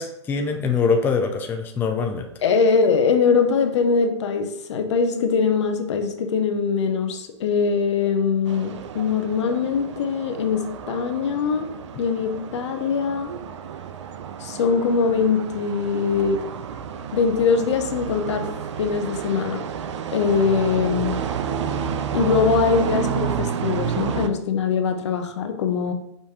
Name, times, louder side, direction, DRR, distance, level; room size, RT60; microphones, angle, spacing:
voice 1, 0.0-2.3, left 5 dB, 15° left, 4 dB, 0.3 m, -23 dB
voice 2, 2.4-13.3 14.4-16.5 17.1-18.5 18.8-19.6 20.1-21.2 22.1-25.9, left 5 dB, 75° left, 7 dB, 0.7 m, -22 dB
sound 1, 8.5-24.3, right 8 dB, 75° right, 0.4 m, -30 dB
5.0 x 2.6 x 3.6 m, 0.78 s
hypercardioid pair, 130°, 15 cm